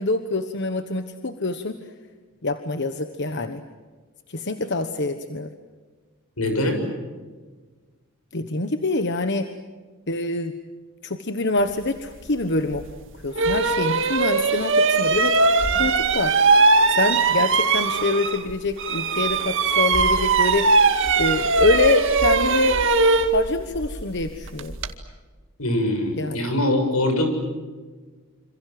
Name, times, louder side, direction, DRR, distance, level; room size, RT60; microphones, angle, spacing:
voice 1, 0.0-1.8 2.4-3.6 4.3-5.5 8.3-9.5 10.1-10.5 11.0-12.8 13.2-15.4 15.8-16.4 16.9-20.8 21.2-22.8 23.3-24.7 26.2-26.5, left 3 dB, 55° left, 8 dB, 1.2 m, -25 dB
voice 2, 6.4-6.8 25.6-27.3, left 1 dB, 85° left, 6 dB, 7.0 m, -22 dB
sound 1, 12.7-12.8 13.3-18.5 18.8-24.9, right 4 dB, 60° right, 2.1 m, -20 dB
27.5 x 27.0 x 7.8 m, 1.4 s
head